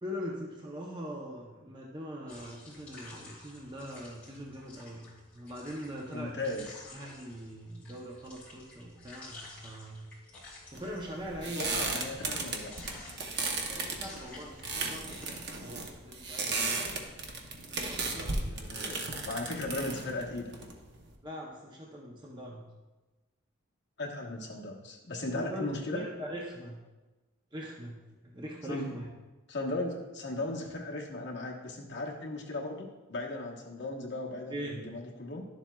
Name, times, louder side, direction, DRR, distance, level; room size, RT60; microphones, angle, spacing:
voice 1, 0.0-6.4 6.9-10.1 10.7-11.7 13.7-16.6 17.6-18.5 21.2-22.7 25.3-26.8 27.5-29.1 34.5-34.9, equal, 20° right, -2 dB, 0.6 m, -42 dB
sound 1, 2.3-15.3, left 2 dB, 5° left, 2.6 m, -52 dB
voice 2, 6.1-6.9 11.5-12.7 18.5-20.5 24.0-26.0 28.7-28.9 29.5-35.4, left 2 dB, 50° left, -1 dB, 1.1 m, -37 dB
sound 2, 10.7-21.1, right 3 dB, 50° right, 0.8 m, -35 dB
11.0 x 7.2 x 2.3 m, 1.2 s
head